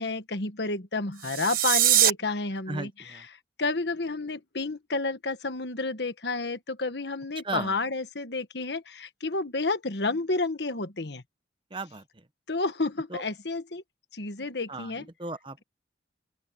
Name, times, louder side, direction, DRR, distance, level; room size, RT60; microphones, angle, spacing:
voice 1, 0.0-3.3 3.6-11.2 12.5-13.8 14.1-15.1, left 3 dB, 65° left, 1.4 m, -30 dB
sound 1, 1.1-2.1, right 11 dB, 50° right, 1.3 m, -22 dB
voice 2, 2.7-3.2 7.4-7.7 11.7-12.0 13.1-13.2 14.7-15.6, right 3 dB, 25° right, 1.0 m, -36 dB
open air
head